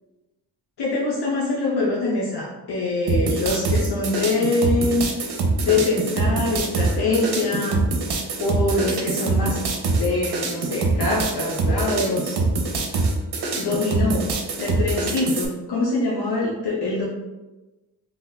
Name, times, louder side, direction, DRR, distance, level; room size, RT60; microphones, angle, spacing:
voice 1, 0.8-5.1 5.6-7.8 8.4-9.6 9.9-12.4 13.6-14.3 14.6-17.0, left 2 dB, 80° left, -4 dB, 0.7 m, -24 dB
sound 1, 3.1-15.5, right 3 dB, 80° right, 0.7 m, -24 dB
2.9 x 2.3 x 3.8 m, 1.1 s
cardioid pair, 65°, 39 cm